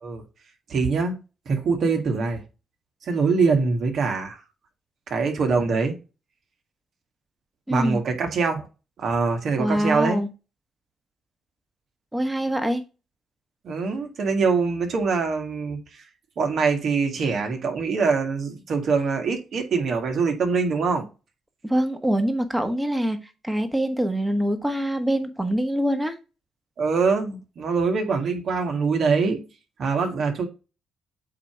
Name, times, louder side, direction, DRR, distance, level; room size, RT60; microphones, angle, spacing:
voice 1, 0.7-1.2 1.5-2.4 3.0-4.4 5.1-6.0 7.7-8.7 9.0-10.2 13.6-16.0 16.4-21.1 26.8-29.4 29.8-30.5, right 4 dB, 60° right, 1.8 m, -23 dB
voice 2, 7.7-8.0 9.6-10.3 12.1-12.8 21.6-23.2 23.4-26.2, equal, 10° right, 1.4 m, -24 dB
8.3 x 2.9 x 4.7 m
cardioid pair, 90°, 0 cm